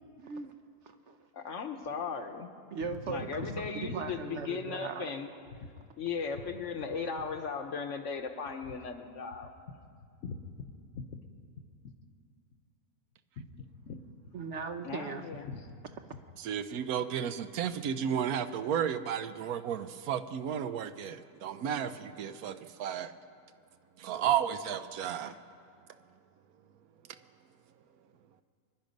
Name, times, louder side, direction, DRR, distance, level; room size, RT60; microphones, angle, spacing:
voice 1, 0.2-0.6 0.8-1.2 2.7-5.1 14.3-15.3 16.0-16.1 25.2-25.4, right 5 dB, 60° right, 7 dB, 0.8 m, -39 dB
voice 2, 1.3-2.5 2.8-5.3 6.0-9.5 10.2-11.1 13.9-14.0 14.8-15.6, left 5 dB, 55° left, 7 dB, 1.2 m, -37 dB
voice 3, 16.4-23.1 24.0-25.3, right 9 dB, 75° right, 11 dB, 1.1 m, -33 dB
25.0 x 10.5 x 5.3 m, 2.3 s
omnidirectional pair, 1.6 m